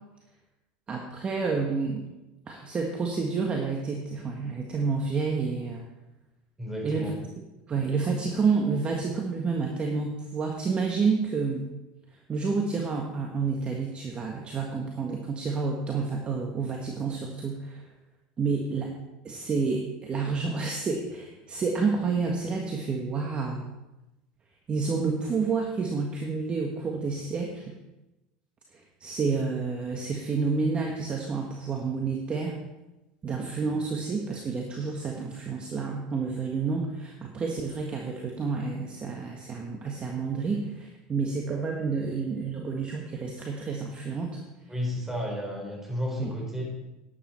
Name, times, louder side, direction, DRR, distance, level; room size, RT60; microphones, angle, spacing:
voice 1, 0.9-2.0 2.5-5.8 6.8-7.0 7.7-11.7 12.3-17.9 18.4-19.0 19.2-23.7 24.7-27.7 28.7-32.6 33.2-44.4 46.2-46.3, right 4 dB, 30° right, 1 dB, 1.5 m, -29 dB
voice 2, 6.6-7.2 44.7-46.6, left 1 dB, 10° right, -1 dB, 4.4 m, -32 dB
11.5 x 10.0 x 4.4 m, 1.0 s
supercardioid pair, 105°, 4 cm